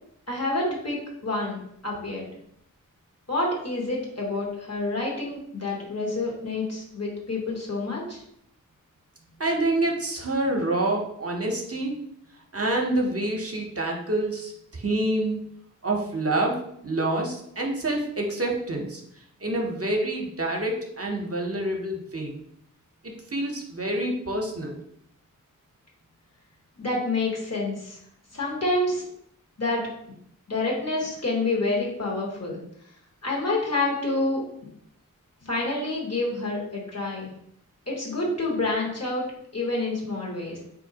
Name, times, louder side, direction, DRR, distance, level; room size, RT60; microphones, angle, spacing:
voice 1, 0.3-2.2 3.3-8.2 26.8-28.0 28.3-29.0 29.6-29.8 30.1-30.2 30.5-32.6 33.2-34.4 35.4-37.3 37.9-39.2 39.5-40.6, left 2 dB, 50° left, -3 dB, 1.2 m, -28 dB
voice 2, 9.2-12.0 12.5-15.4 15.8-16.6 16.8-19.0 19.4-22.4 23.0-24.8, right 1 dB, 45° right, 0 dB, 0.7 m, -27 dB
4.2 x 2.6 x 2.7 m, 0.71 s
wide cardioid pair, 45°, 32 cm